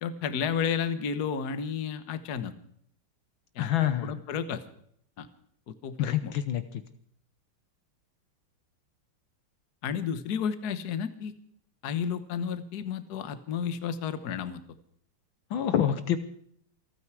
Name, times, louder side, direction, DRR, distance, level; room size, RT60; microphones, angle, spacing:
voice 1, 0.0-2.5 3.5-3.7 4.0-4.6 5.2-5.3 5.7-6.3 9.8-11.3 11.8-14.6, left 7 dB, 55° left, 11 dB, 1.5 m, -32 dB
voice 2, 3.6-4.2 6.0-6.8 15.5-16.2, left 10 dB, 70° left, 10 dB, 1.6 m, -27 dB
27.0 x 9.4 x 4.7 m, 0.66 s
omnidirectional pair, 2.3 m